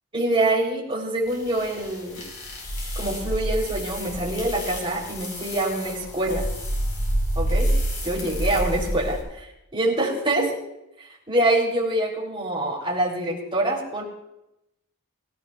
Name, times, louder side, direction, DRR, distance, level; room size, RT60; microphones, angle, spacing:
voice 1, 0.1-2.2 2.9-6.5 7.3-7.8 8.0-10.6 11.3-14.0, right 1 dB, 25° right, -2 dB, 3.3 m, -25 dB
sound 1, 1.3-9.2, equal, 90° left, 4.5 m, -28 dB
22.5 x 14.5 x 2.4 m, 0.90 s
head